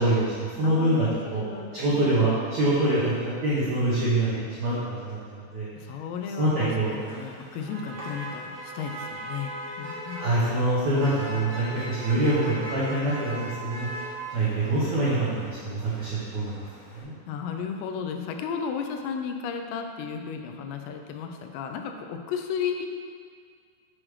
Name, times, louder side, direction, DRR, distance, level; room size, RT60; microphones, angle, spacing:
voice 1, 0.0-1.4 1.7-5.7 6.4-7.0 10.1-13.9 14.3-16.6 16.9-17.2, right 1 dB, 80° right, -10 dB, 1.6 m, -25 dB
voice 2, 0.6-2.1 5.8-10.3 16.9-22.9, left 6 dB, 85° left, 4 dB, 2.8 m, -34 dB
Motor vehicle (road), 6.5-17.0, right 1 dB, 60° right, 2.1 m, -39 dB
7.3 x 6.3 x 3.2 m, 2.1 s
omnidirectional pair, 5.0 m